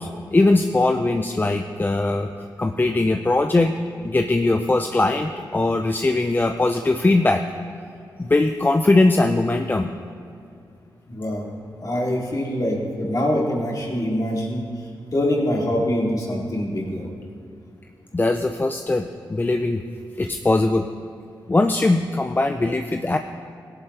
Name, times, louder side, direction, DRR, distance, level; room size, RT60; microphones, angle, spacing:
voice 1, 0.0-2.3 2.6-3.7 4.0-7.4 8.2-9.9 18.1-19.8 20.2-20.9 21.5-23.2, left 2 dB, 25° left, 6 dB, 0.5 m, -20 dB
voice 2, 11.1-11.5 11.8-14.6 15.1-17.0, left 1 dB, 45° left, -3 dB, 3.0 m, -24 dB
17.0 x 11.0 x 3.3 m, 2.5 s
cardioid pair, 65°, 8 cm